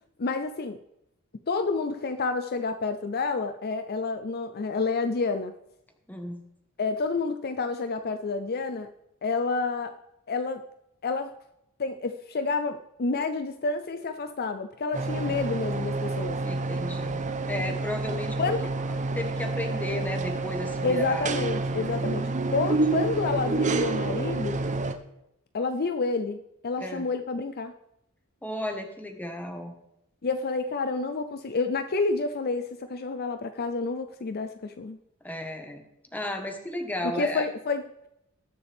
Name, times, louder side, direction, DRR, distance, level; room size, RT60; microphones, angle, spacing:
voice 1, 0.2-0.8 1.5-5.5 6.8-8.9 9.2-9.9 10.3-10.6 11.0-11.3 11.8-16.4 18.4-18.7 20.8-24.6 25.5-27.7 30.2-35.0 37.2-38.1, left 4 dB, 45° left, 9 dB, 0.6 m, -29 dB
voice 2, 6.1-6.5 16.4-18.5 19.1-21.3 26.8-27.1 28.4-29.7 35.2-35.8 36.1-37.5, left 1 dB, 10° left, 4 dB, 1.4 m, -34 dB
sound 1, 14.9-24.9, right 3 dB, 35° right, 0.8 m, -29 dB
20.0 x 6.8 x 3.5 m, 0.82 s
head